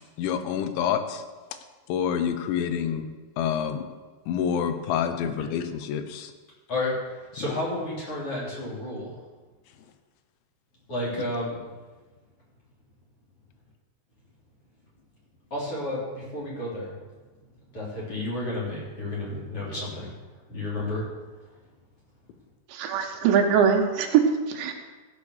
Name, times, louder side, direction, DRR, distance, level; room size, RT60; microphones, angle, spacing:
voice 1, 0.2-1.2 1.9-3.1 3.4-3.8 4.3-6.3 7.4-7.6, left 8 dB, 90° left, 9 dB, 3.3 m, -27 dB
voice 2, 6.7-9.2 10.9-11.6 15.5-17.0 17.7-20.1 20.5-21.1, left 1 dB, 35° left, -6 dB, 3.8 m, -31 dB
voice 3, 22.7-24.7, right 7 dB, 85° right, 4 dB, 3.5 m, -22 dB
15.5 x 6.6 x 6.5 m, 1.3 s
omnidirectional pair, 5.1 m